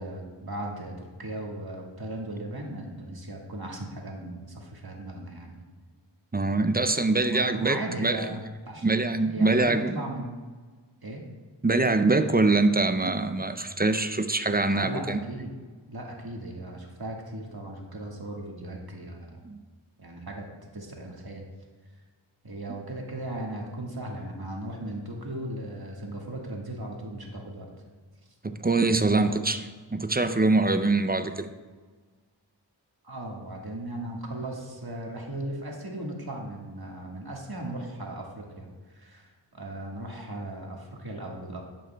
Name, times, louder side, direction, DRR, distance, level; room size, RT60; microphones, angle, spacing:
voice 1, 0.0-5.6 7.2-8.4 8.7-8.9 9.3-10.3 11.0-11.3 14.7-15.6 15.9-19.4 20.0-20.4 20.7-21.5 22.4-27.7 29.0-29.3 33.0-41.6, right 1 dB, 55° right, 0 dB, 1.6 m, -37 dB
voice 2, 6.3-8.3 8.8-10.0 11.6-15.2 19.4-19.6 28.4-29.6 29.9-31.5, right 3 dB, 20° right, 9 dB, 0.4 m, -24 dB
11.5 x 7.7 x 2.2 m, 1.4 s
wide cardioid pair, 40°, 45 cm